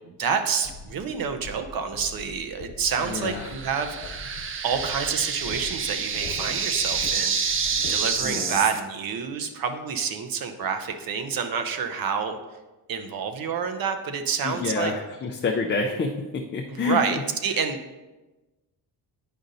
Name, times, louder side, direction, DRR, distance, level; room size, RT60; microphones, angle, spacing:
voice 1, 0.0-4.2 4.6-7.6 7.9-12.4 12.9-14.9 16.7-17.8, right 6 dB, 60° right, 7 dB, 0.8 m, -28 dB
sound 1, 0.6-8.3, left 4 dB, 80° left, 1.2 m, -42 dB
sound 2, 2.9-8.8, right 6 dB, 35° right, 0.4 m, -28 dB
voice 2, 3.0-3.5 8.2-8.6 14.4-17.0, left 4 dB, 30° left, 2 dB, 0.5 m, -28 dB
9.9 x 5.2 x 2.6 m, 1.1 s
cardioid pair, 140°, 39 cm